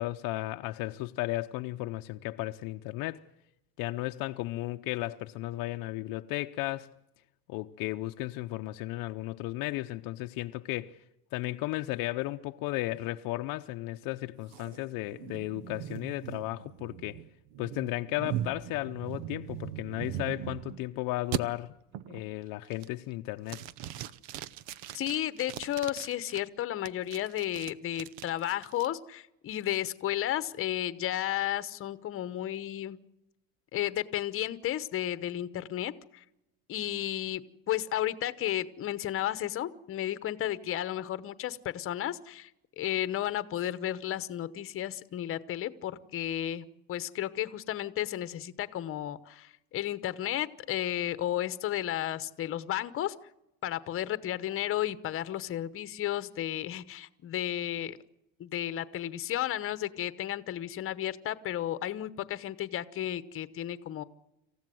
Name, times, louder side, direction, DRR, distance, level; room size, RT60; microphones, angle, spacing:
voice 1, 0.0-3.2 3.8-6.9 7.5-11.0 11.3-17.2 17.6-21.8 22.1-23.6, left 18 dB, 60° left, 0.8 m, -34 dB
sound 1, 14.5-20.8 21.3-21.4 21.9-22.3 22.7-23.1 23.5-26.4 26.9-28.9, right 11 dB, 70° right, 0.9 m, -40 dB
voice 2, 24.9-33.0 33.7-36.2 36.7-42.5 42.8-53.1 53.6-58.0 58.4-64.0, left 12 dB, 35° left, 1.0 m, -33 dB
27.0 x 15.0 x 7.8 m
cardioid pair, 140°, 39 cm